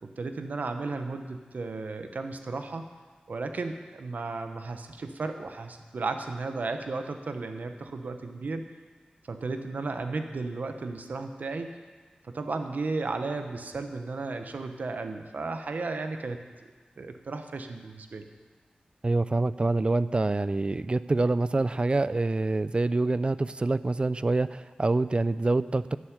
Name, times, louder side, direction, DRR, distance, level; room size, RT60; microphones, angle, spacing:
voice 1, 0.0-2.9 3.3-8.6 9.3-11.8 12.2-16.4 17.0-18.2, right 3 dB, 70° right, 6 dB, 1.1 m, -34 dB
voice 2, 19.0-26.0, right 2 dB, 35° right, 15 dB, 0.5 m, -26 dB
10.5 x 7.2 x 9.4 m, 1.4 s
cardioid pair, 45°, 3 cm